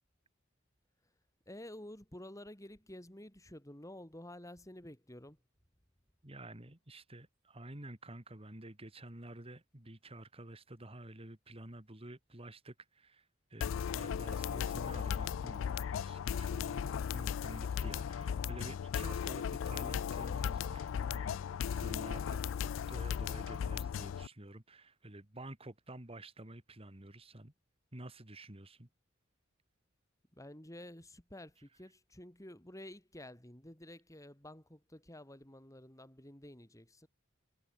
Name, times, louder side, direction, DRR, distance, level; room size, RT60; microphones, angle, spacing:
voice 1, 1.5-5.4 30.3-37.1, left 1 dB, 15° left, 4.0 m, -51 dB
voice 2, 6.2-27.5 27.9-28.9, right 1 dB, 30° right, 2.2 m, -50 dB
sound 1, 13.6-24.3, left 7 dB, 70° left, 0.3 m, -36 dB
head